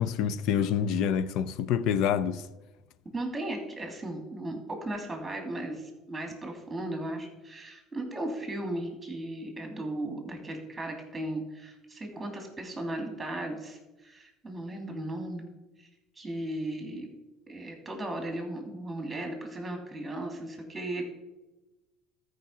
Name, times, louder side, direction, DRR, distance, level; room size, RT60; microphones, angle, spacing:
voice 1, 0.0-2.4, left 8 dB, 70° left, 0.6 m, -27 dB
voice 2, 3.1-15.5 15.8-15.9 16.1-17.1 17.5-21.0, right 1 dB, 15° right, 2.8 m, -36 dB
13.5 x 5.0 x 5.7 m
supercardioid pair, 105°, 0 cm